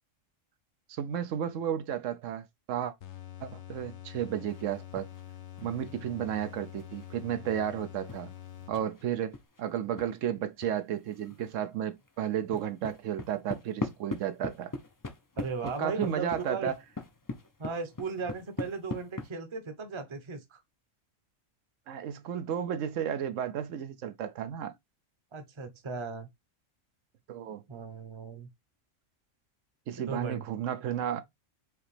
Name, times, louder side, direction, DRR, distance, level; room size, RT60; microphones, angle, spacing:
voice 1, 0.9-2.9 3.4-5.1 5.6-8.3 8.7-14.7 15.6-16.8 21.9-24.7 27.3-27.6 29.9-31.2, right 9 dB, 80° right, 1.0 m, -33 dB
sound 1, 3.0-9.1, left 12 dB, 70° left, 0.9 m, -46 dB
sound 2, 4.5-5.3 5.6-10.1 10.6-10.7 11.0-11.5 11.8-19.3, left 3 dB, 30° left, 0.3 m, -41 dB
voice 2, 15.4-16.7 17.6-20.6 25.3-26.3 27.7-28.5 30.0-30.5, right 4 dB, 30° right, 0.7 m, -37 dB
4.9 x 2.9 x 3.2 m
omnidirectional pair, 1.3 m